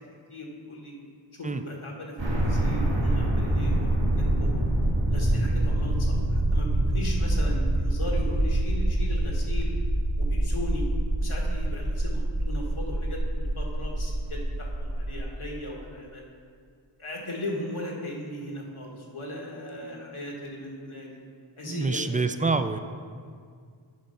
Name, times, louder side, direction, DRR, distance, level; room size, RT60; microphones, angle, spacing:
voice 1, 0.3-0.9 1.3-3.8 4.0-4.6 5.1-9.7 10.2-10.9 11.2-16.2 17.0-21.2 21.6-22.2, left 1 dB, 80° left, -1 dB, 1.5 m, -38 dB
sound 1, 2.2-15.2, right 1 dB, 60° right, 1.6 m, -26 dB
voice 2, 21.6-22.8, right 3 dB, 20° right, 10 dB, 0.3 m, -26 dB
9.5 x 4.1 x 5.6 m, 2.1 s
wide cardioid pair, 45°, 49 cm